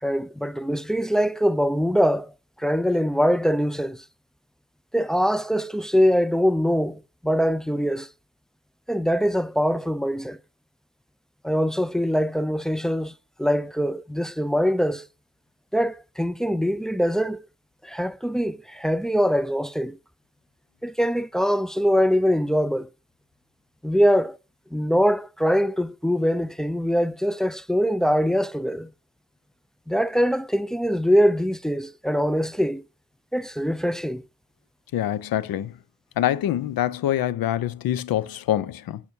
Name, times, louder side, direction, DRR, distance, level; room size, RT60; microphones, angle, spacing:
voice 1, 0.0-2.3 2.6-4.0 4.9-8.1 8.9-10.4 11.4-13.1 13.4-15.1 15.7-17.5 17.8-20.0 20.8-22.9 23.8-24.4 24.7-28.9 29.9-32.8 33.3-34.2, equal, ahead, 0.3 m, -23 dB
voice 2, 34.9-35.7 36.2-39.0, left 12 dB, 70° left, 0.6 m, -25 dB
7.2 x 6.2 x 2.7 m
supercardioid pair, 45°, 37 cm